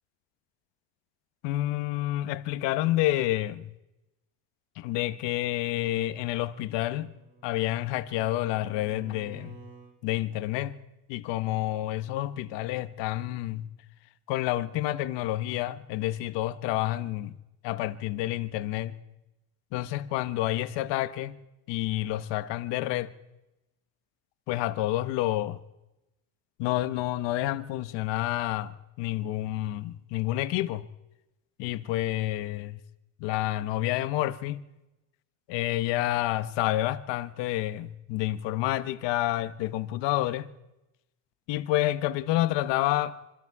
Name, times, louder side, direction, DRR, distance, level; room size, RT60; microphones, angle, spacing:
voice 1, 1.4-3.7 4.8-7.1 7.4-9.6 10.0-10.7 11.1-13.7 14.3-17.3 17.6-19.0 19.7-21.4 21.7-23.1 24.5-25.6 26.6-30.8 31.6-32.8 33.2-34.6 35.5-40.5 41.5-43.2, left 15 dB, 65° left, 1.4 m, -29 dB
Bowed string instrument, 6.9-10.0, right 5 dB, 85° right, 4.4 m, -51 dB
26.5 x 24.5 x 4.9 m
cardioid pair, 155°, 45 cm